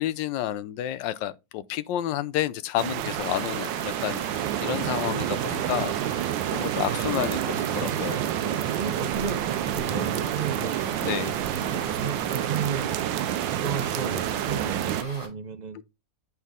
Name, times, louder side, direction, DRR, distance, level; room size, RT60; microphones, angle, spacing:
voice 1, 0.0-6.2 6.5-8.2 11.0-11.4 15.7-15.8, left 12 dB, 80° left, 1.3 m, -30 dB
sound 1, 2.8-15.0, right 13 dB, 90° right, 1.3 m, -29 dB
sound 2, 3.2-15.3, left 1 dB, 30° left, 5.4 m, -41 dB
sound 3, 4.6-12.3, left 3 dB, 10° right, 2.5 m, -45 dB
voice 2, 5.0-5.4 8.3-11.1 11.5-13.3 13.6-15.8, right 6 dB, 60° right, 0.4 m, -33 dB
8.3 x 6.0 x 3.6 m
omnidirectional pair, 2.0 m